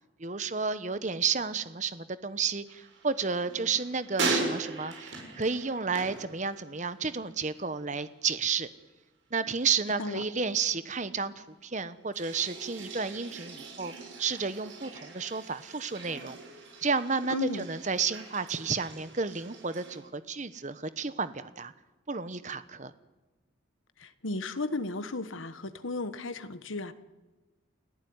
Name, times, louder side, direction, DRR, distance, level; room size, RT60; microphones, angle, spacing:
voice 1, 0.2-8.7 9.3-13.9 14.2-16.4 16.8-21.7 22.1-22.9, right 5 dB, 35° right, 13 dB, 1.0 m, -31 dB
sound 1, 2.7-7.1 7.4-7.9 12.1-20.0, right 3 dB, 70° right, 7.0 m, -39 dB
voice 2, 17.3-17.7 24.0-26.9, left 2 dB, 80° left, 12 dB, 1.4 m, -34 dB
29.5 x 15.5 x 9.6 m, 1.2 s
head